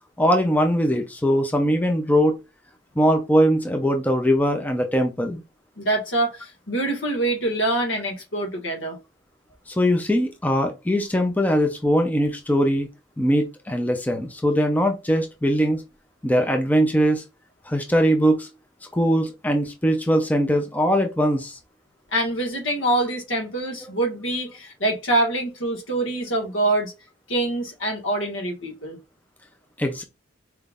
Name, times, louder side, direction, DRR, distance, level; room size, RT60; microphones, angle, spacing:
voice 1, 0.2-2.4 3.0-5.4 9.7-12.9 13.2-15.8 16.2-17.2 17.7-18.5 18.9-21.6 29.8-30.0, equal, 10° left, 0.5 m, -21 dB
voice 2, 5.8-9.0 22.1-26.9 27.3-29.0, right 2 dB, 85° left, 1.7 m, -25 dB
4.4 x 3.6 x 2.5 m
head